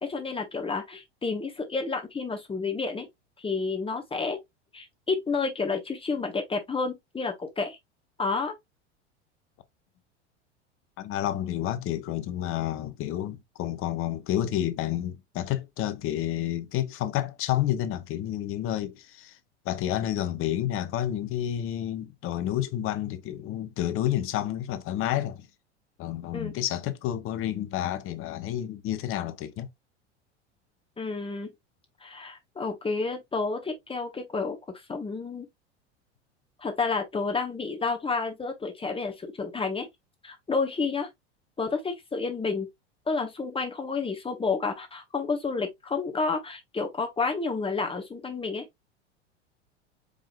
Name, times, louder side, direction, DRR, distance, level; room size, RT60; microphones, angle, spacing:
voice 1, 0.0-3.1 3.4-4.4 4.7-7.8 8.2-8.5 26.3-26.5 31.0-31.5 32.0-34.6 34.9-35.5 36.6-39.9 40.2-41.1 41.6-42.7 43.1-48.7, left 4 dB, 15° left, 1.1 m, -30 dB
voice 2, 11.0-19.4 19.6-25.5 26.0-29.7, left 12 dB, 40° left, 0.7 m, -30 dB
4.9 x 3.6 x 2.3 m
hypercardioid pair, 85°, 35 cm